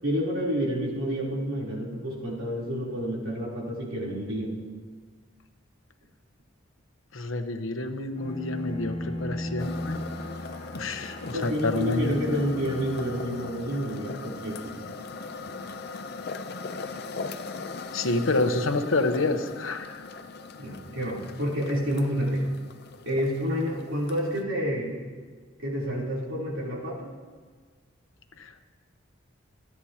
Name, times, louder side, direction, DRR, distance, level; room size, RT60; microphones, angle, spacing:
voice 1, 0.0-4.5 11.3-14.7 20.6-22.4 23.0-25.0 25.6-27.1, equal, 80° right, -4 dB, 3.4 m, -29 dB
voice 2, 7.1-10.0 10.7-12.4 17.9-20.0 28.4-28.5, left 2 dB, 85° left, 7 dB, 1.0 m, -28 dB
Bowed string instrument, 8.1-14.0, left 1 dB, 30° left, 1.4 m, -37 dB
sound 1, 9.6-24.4, left 4 dB, 50° left, 0.6 m, -40 dB
26.5 x 9.9 x 2.9 m, 1.5 s
head